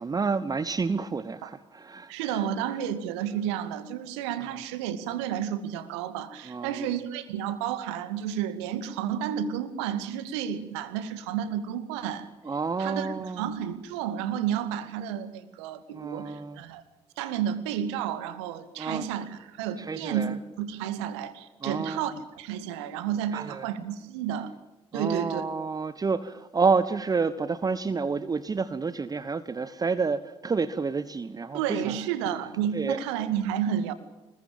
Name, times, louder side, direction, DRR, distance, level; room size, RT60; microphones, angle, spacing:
voice 1, 0.0-2.4 6.4-6.9 12.4-13.5 15.9-16.6 18.8-19.0 19.8-20.3 21.6-22.2 23.3-23.7 24.9-32.0 32.7-33.0, right 4 dB, 25° right, 1.1 m, -29 dB
voice 2, 2.1-12.3 12.8-16.8 17.2-24.5 24.9-25.4 31.5-33.9, right 9 dB, 70° right, 2.1 m, -31 dB
26.0 x 21.5 x 8.9 m
figure-of-eight pair, 50°, 15 cm